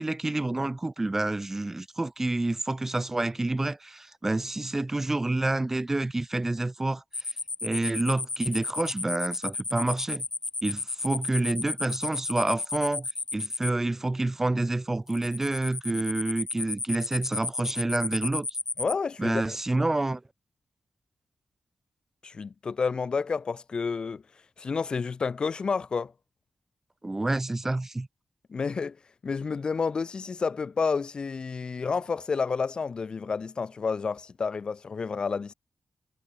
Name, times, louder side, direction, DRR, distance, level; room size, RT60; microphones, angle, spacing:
voice 1, 0.0-7.0 7.6-10.3 10.6-18.5 19.2-20.2 27.0-28.1, right 2 dB, 15° right, 5.3 m, -28 dB
sound 1, 7.1-13.7 15.1-18.9, left 3 dB, 25° left, 1.4 m, -33 dB
voice 2, 18.8-19.6 22.2-24.2 24.6-26.1 28.5-29.0 29.2-35.5, left 5 dB, 40° left, 1.3 m, -30 dB
wide cardioid pair, 175°, 2 cm